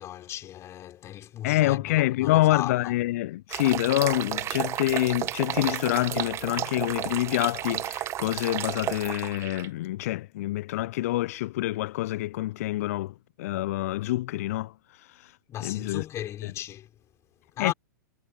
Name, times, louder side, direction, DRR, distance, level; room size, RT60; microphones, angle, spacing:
voice 1, 0.0-2.9 15.5-16.9 17.5-17.7, left 12 dB, 25° left, 5.0 m, -36 dB
voice 2, 1.4-16.1 16.4-16.5 17.6-17.7, left 17 dB, 45° left, 0.4 m, -27 dB
sound 1, 3.5-9.7, right 13 dB, 25° right, 1.4 m, -32 dB
figure-of-eight pair, 110°, 11 cm